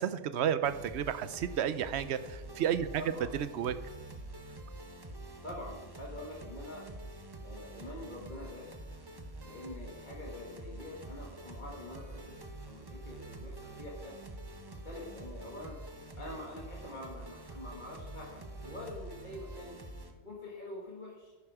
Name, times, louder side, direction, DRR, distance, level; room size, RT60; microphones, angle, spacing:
voice 1, 0.0-3.0 3.4-3.8, right 9 dB, 65° right, 13 dB, 0.9 m, -32 dB
sound 1, 0.6-20.1, right 2 dB, 20° right, 0.9 m, -46 dB
voice 2, 5.4-6.8 7.4-8.7 9.4-14.2 14.6-15.8 16.2-19.7 20.2-21.3, left 1 dB, 40° left, -3 dB, 1.8 m, -46 dB
10.5 x 9.4 x 4.9 m, 1.2 s
omnidirectional pair, 1.3 m